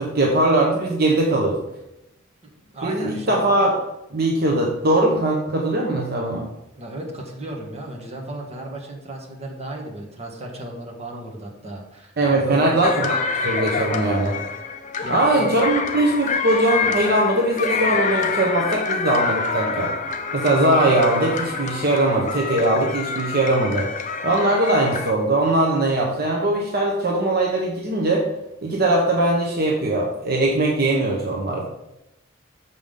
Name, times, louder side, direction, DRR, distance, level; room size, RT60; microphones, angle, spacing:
voice 1, 0.0-1.6 2.8-3.8 4.1-6.5 12.2-13.1 13.4-14.4 15.1-19.9 20.3-23.9 24.2-28.2 28.6-31.6, right 1 dB, 50° right, -1 dB, 1.0 m, -20 dB
voice 2, 2.4-3.5 6.8-12.8 15.0-15.5, right 1 dB, 35° right, -1 dB, 1.4 m, -34 dB
sound 1, 12.8-25.1, left 5 dB, 40° left, 0.6 m, -27 dB
7.0 x 5.5 x 5.1 m, 0.90 s
head